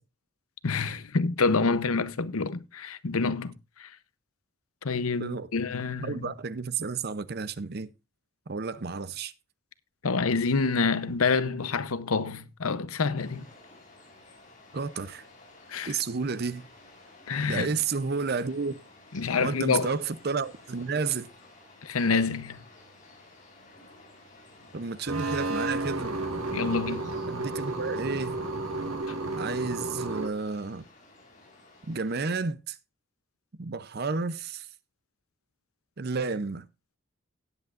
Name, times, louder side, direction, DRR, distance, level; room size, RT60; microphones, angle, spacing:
voice 1, 0.6-3.9 4.8-6.3 10.0-13.5 15.7-16.0 17.3-17.7 19.1-19.9 21.8-22.6 26.5-27.1, left 4 dB, 85° left, 0.8 m, -27 dB
voice 2, 6.0-7.9 8.5-9.3 14.7-15.2 15.8-16.7 17.5-18.8 19.4-21.3 24.7-26.2 27.3-28.4 29.3-30.8 31.9-32.8 33.6-34.7 36.0-36.7, right 4 dB, 45° right, 0.6 m, -31 dB
sound 1, 13.1-32.4, left 2 dB, 35° left, 6.8 m, -54 dB
sound 2, 25.1-30.3, right 2 dB, 80° right, 1.8 m, -32 dB
18.0 x 8.3 x 2.5 m
head